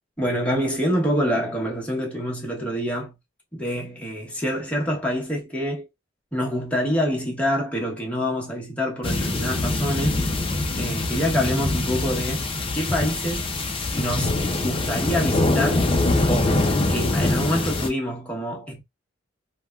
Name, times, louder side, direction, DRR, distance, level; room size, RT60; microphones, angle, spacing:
voice 1, 0.2-3.2 3.5-5.9 6.3-10.2 10.8-13.5 13.9-15.9 16.3-18.8, equal, 5° left, 1.0 m, -26 dB
sound 1, 9.0-17.9, left 2 dB, 30° left, 0.5 m, -24 dB
3.3 x 2.2 x 2.3 m
head